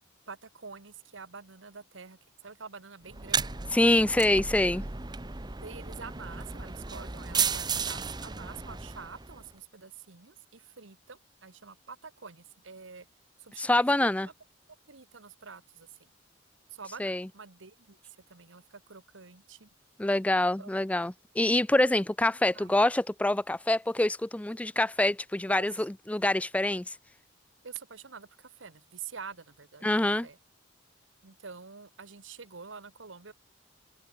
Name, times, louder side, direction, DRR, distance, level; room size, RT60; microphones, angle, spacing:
voice 1, 0.3-3.6 5.6-13.1 13.4-13.7 14.0-14.1 14.9-15.9 16.7-18.0 18.3-19.7 20.6-20.7 22.5-22.7 25.5-25.7 27.6-29.9 30.2-30.4 31.2-33.3, right 5 dB, 90° right, 1.5 m, -47 dB
sound 1, 3.1-9.5, right 5 dB, 25° right, 1.0 m, -34 dB
voice 2, 3.7-4.8 13.6-14.3 17.0-17.3 20.0-27.0 29.8-30.3, left 1 dB, 5° left, 0.4 m, -26 dB
open air
head